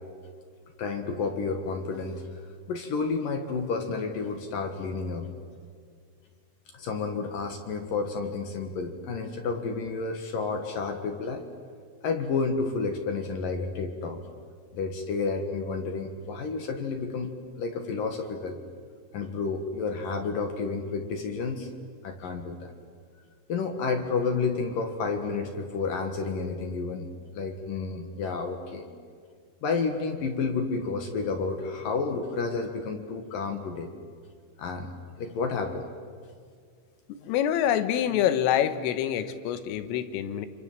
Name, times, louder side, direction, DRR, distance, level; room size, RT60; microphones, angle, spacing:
voice 1, 0.8-2.3 2.7-5.3 6.7-11.4 12.0-14.2 14.7-18.6 19.1-21.7 22.0-22.7 23.5-28.9 29.6-33.9 34.6-34.9 35.2-35.9, left 4 dB, 60° left, 5 dB, 2.5 m, -30 dB
voice 2, 37.1-40.5, left 10 dB, 80° left, 11 dB, 3.8 m, -26 dB
29.0 x 26.5 x 7.6 m, 2.1 s
omnidirectional pair, 5.9 m